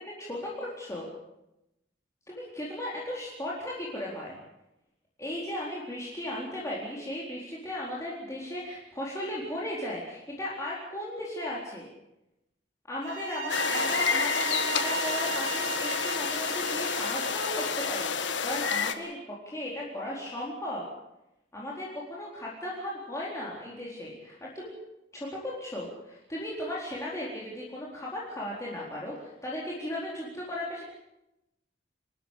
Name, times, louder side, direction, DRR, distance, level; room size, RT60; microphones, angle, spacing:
voice 1, 0.2-1.1 2.3-4.4 5.2-11.9 12.9-20.8 21.5-24.7 25.1-30.8, left 1 dB, 15° left, -5 dB, 4.2 m, -36 dB
sound 1, 13.0-18.2, right 4 dB, 60° right, 4.0 m, -35 dB
sound 2, 13.5-18.9, left 6 dB, 85° left, 1.7 m, -29 dB
28.5 x 13.5 x 8.3 m, 0.88 s
head